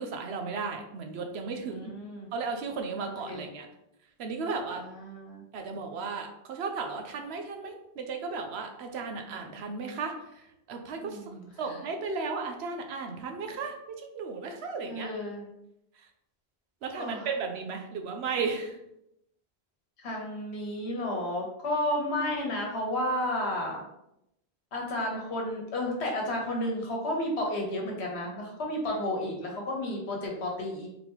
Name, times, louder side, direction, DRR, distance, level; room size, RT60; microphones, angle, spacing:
voice 1, 0.0-1.9 2.3-3.7 4.2-4.8 5.5-10.1 10.7-11.2 11.6-13.7 14.2-15.1 16.8-18.8, right 4 dB, 75° right, 4 dB, 0.9 m, -34 dB
voice 2, 1.7-2.3 3.0-3.4 4.7-5.4 11.0-11.8 14.8-15.4 16.9-17.3 20.0-23.8 24.7-30.9, left 1 dB, 75° left, 0 dB, 1.3 m, -32 dB
4.0 x 2.9 x 3.5 m, 0.83 s
omnidirectional pair, 1.1 m